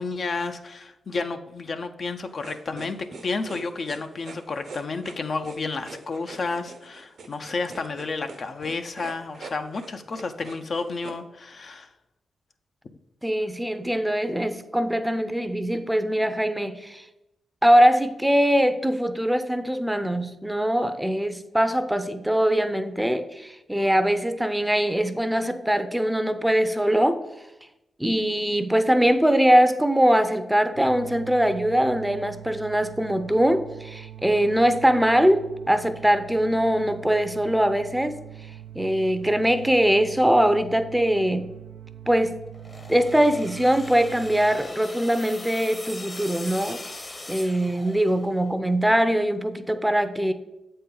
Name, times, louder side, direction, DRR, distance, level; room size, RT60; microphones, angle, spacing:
voice 1, 0.0-11.9, left 3 dB, 55° left, 7 dB, 0.5 m, -31 dB
sound 1, 2.4-11.2, right 3 dB, 75° right, 1.0 m, -43 dB
voice 2, 13.2-17.0 17.6-27.2 28.0-38.2 38.7-41.5 42.1-42.4 42.9-46.8 47.3-50.3, equal, 5° right, 10 dB, 0.5 m, -22 dB
sound 2, 30.7-44.6, right 11 dB, 90° right, 0.4 m, -43 dB
sound 3, 42.5-48.4, left 2 dB, 35° left, 0.8 m, -40 dB
7.3 x 4.3 x 3.8 m, 0.95 s
supercardioid pair, 50°, 0 cm